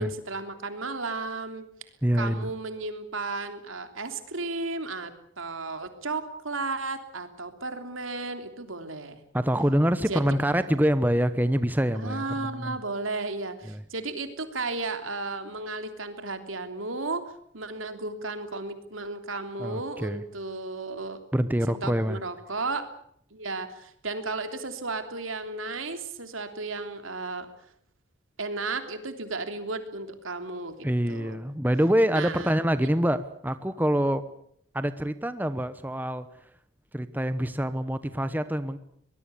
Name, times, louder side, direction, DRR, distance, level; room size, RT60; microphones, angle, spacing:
voice 1, 0.0-1.7 2.2-9.2 10.1-10.5 11.9-17.2 17.5-21.2 21.8-22.8 23.3-27.5 28.4-31.4 32.1-32.9, right 3 dB, 90° right, 7 dB, 3.3 m, -34 dB
voice 2, 2.0-2.5 9.3-12.8 13.7-13.8 19.6-20.2 21.3-22.2 30.8-34.3 34.7-36.3 36.9-38.8, equal, 10° right, 12 dB, 1.0 m, -25 dB
23.5 x 20.5 x 8.5 m, 0.67 s
head